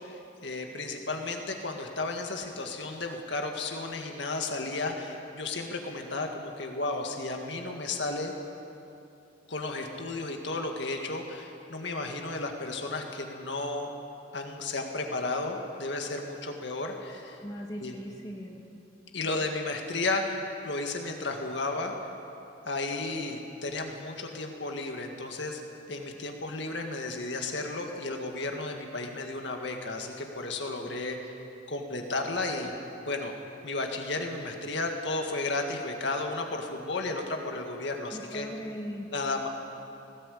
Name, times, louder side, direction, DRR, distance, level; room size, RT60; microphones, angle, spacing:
voice 1, 0.0-8.3 9.5-13.9 14.3-17.4 17.8-17.9 19.1-21.9 22.7-25.6 25.9-31.3 31.7-32.7 33.1-33.4 33.6-38.5 39.1-39.5, left 2 dB, 65° left, 3 dB, 2.0 m, -33 dB
voice 2, 17.4-18.6 38.1-39.1, equal, 20° left, 0 dB, 1.8 m, -39 dB
19.0 x 17.0 x 8.5 m, 2.8 s
head